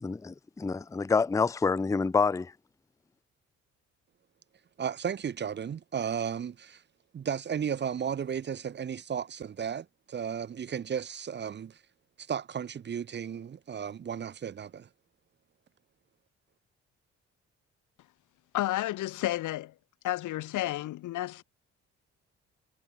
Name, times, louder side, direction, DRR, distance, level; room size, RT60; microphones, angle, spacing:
voice 1, 0.0-2.5, left 4 dB, 10° left, 0.5 m, -27 dB
voice 2, 4.8-6.8 7.1-11.8 12.2-14.9, right 8 dB, 35° right, 0.7 m, -34 dB
voice 3, 18.5-19.7 20.0-21.4, left 15 dB, 80° left, 1.2 m, -31 dB
cardioid pair, 90°, 30 cm